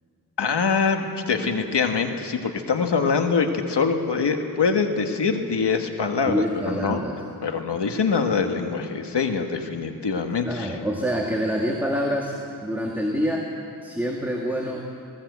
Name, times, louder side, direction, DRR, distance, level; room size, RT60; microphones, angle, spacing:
voice 1, 0.4-7.0 7.4-10.8, left 5 dB, 80° left, 5 dB, 1.6 m, -24 dB
voice 2, 6.2-7.2 10.4-13.5 13.8-14.8, equal, 5° right, -1 dB, 1.9 m, -26 dB
18.5 x 18.0 x 8.1 m, 2.6 s
wide cardioid pair, 115°, 41 cm